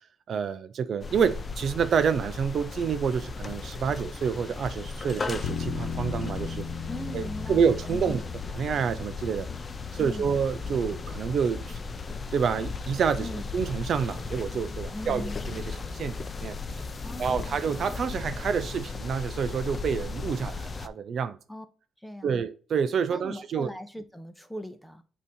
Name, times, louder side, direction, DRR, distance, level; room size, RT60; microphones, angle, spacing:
voice 1, 0.3-6.6 7.1-8.3 8.5-9.5 9.9-11.8 12.3-16.6 17.2-21.4 22.2-23.7, right 6 dB, 60° right, 0.5 m, -28 dB
sound 1, 1.0-20.9, left 4 dB, 35° left, 0.6 m, -36 dB
sound 2, 5.4-16.2, left 6 dB, 75° left, 1.0 m, -40 dB
voice 2, 6.9-8.2 10.0-10.3 13.2-13.5 14.9-15.4 17.0-17.6 21.5-21.6 22.0-22.4 23.1-25.0, left 1 dB, ahead, 0.9 m, -39 dB
8.1 x 2.8 x 6.1 m
cardioid pair, 90°, 0 cm